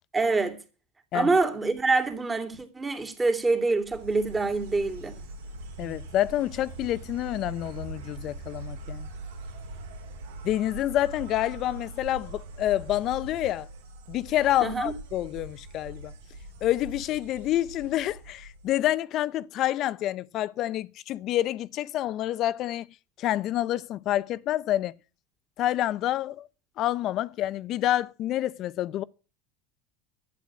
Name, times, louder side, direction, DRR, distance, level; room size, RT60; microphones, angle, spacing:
voice 1, 0.1-0.6 1.1-5.2 14.6-14.9, right 3 dB, 15° right, 2.7 m, -25 dB
Insect, 3.8-18.9, right 2 dB, 90° right, 3.3 m, -42 dB
voice 2, 5.8-9.1 10.4-13.7 14.1-16.1 16.6-22.9 23.2-24.9 25.6-26.5 26.8-29.0, left 13 dB, 50° left, 0.7 m, -28 dB
11.5 x 9.2 x 8.3 m
supercardioid pair, 115°, 0 cm